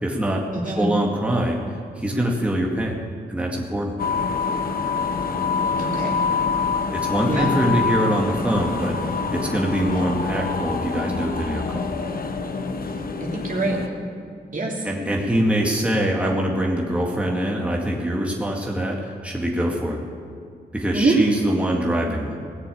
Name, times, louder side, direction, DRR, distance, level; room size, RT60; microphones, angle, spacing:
voice 1, 0.0-1.6 2.0-3.0 3.3-3.9 6.9-11.9 14.8-20.0 20.7-22.4, right 1 dB, 5° right, -2 dB, 2.0 m, -24 dB
voice 2, 0.5-0.9 5.8-6.2 7.3-7.5 13.2-13.8 14.5-14.9 20.9-21.2, right 2 dB, 50° right, -2 dB, 3.0 m, -24 dB
sound 1, 4.0-13.9, left 5 dB, 60° left, 1.1 m, -26 dB
17.5 x 6.8 x 8.5 m, 2.2 s
cardioid pair, 55°, 17 cm